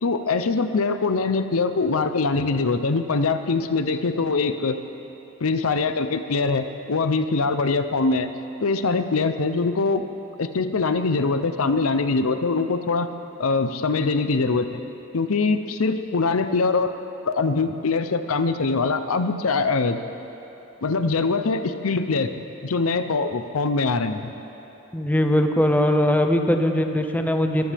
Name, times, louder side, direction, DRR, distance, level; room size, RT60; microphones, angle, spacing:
voice 1, 0.0-4.8 5.4-8.3 8.6-10.0 10.4-13.1 13.4-14.8 15.1-16.9 17.3-20.0 20.8-22.3 22.6-24.3, left 4 dB, 90° left, 9 dB, 0.7 m, -23 dB
voice 2, 24.9-27.7, left 1 dB, 10° left, 5 dB, 0.7 m, -20 dB
23.0 x 15.0 x 3.5 m, 3.0 s
head